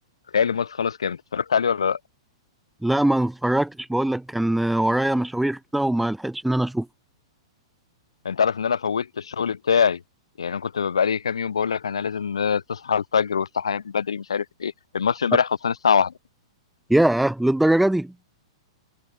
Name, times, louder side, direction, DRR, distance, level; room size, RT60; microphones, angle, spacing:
voice 1, 0.3-2.0 8.2-10.0 10.4-16.1, left 6 dB, 80° left, 0.9 m, -23 dB
voice 2, 2.8-6.9 16.9-18.1, right 1 dB, 5° right, 0.7 m, -22 dB
hypercardioid pair, 110°, 3 cm